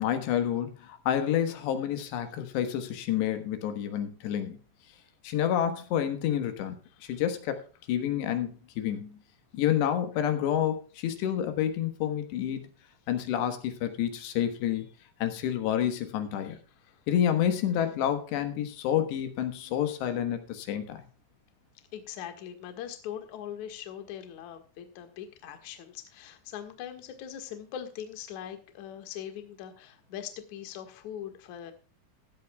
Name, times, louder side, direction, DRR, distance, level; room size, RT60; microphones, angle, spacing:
voice 1, 0.0-4.6 5.2-6.8 7.1-7.6 7.9-9.2 9.5-12.6 13.1-14.9 15.2-16.6 17.1-21.0, left 10 dB, 85° left, 8 dB, 3.5 m, -29 dB
voice 2, 21.9-31.7, left 10 dB, 55° left, 6 dB, 2.5 m, -41 dB
16.0 x 12.5 x 2.3 m, 0.37 s
omnidirectional pair, 4.8 m